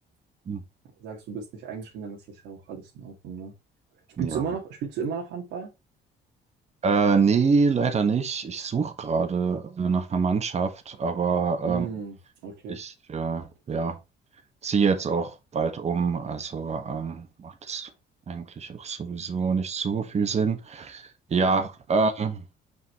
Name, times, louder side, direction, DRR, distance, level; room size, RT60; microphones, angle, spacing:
voice 1, 1.0-3.5 4.2-5.7 11.7-12.2 12.4-12.8, right 6 dB, 85° right, 1.9 m, -34 dB
voice 2, 6.8-11.9 12.7-14.0 14.6-17.9 18.3-21.0 21.3-22.4, right 5 dB, 35° right, 1.4 m, -26 dB
6.0 x 5.7 x 3.1 m
cardioid pair, 105°, 19 cm